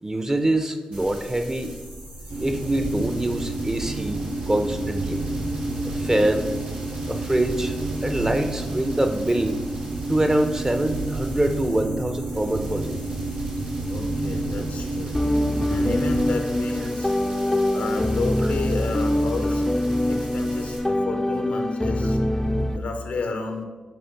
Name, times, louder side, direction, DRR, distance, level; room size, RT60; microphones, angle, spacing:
voice 1, 0.0-1.7 2.4-5.3 5.8-6.5 7.1-7.7 8.0-9.5 10.1-13.0 15.8-15.9, right 1 dB, 25° right, 7 dB, 0.7 m, -24 dB
sound 1, 0.9-20.8, right 1 dB, 80° right, 1.5 m, -41 dB
sound 2, 2.3-16.3, right 2 dB, 65° right, 0.7 m, -30 dB
voice 2, 13.9-15.2 15.7-17.1 17.7-19.6 20.1-22.2 22.7-23.7, left 3 dB, 75° left, 5 dB, 0.7 m, -31 dB
sound 3, 15.1-22.8, left 1 dB, 15° left, 0.5 m, -24 dB
7.2 x 2.9 x 4.6 m, 1.3 s
supercardioid pair, 45°, 2 cm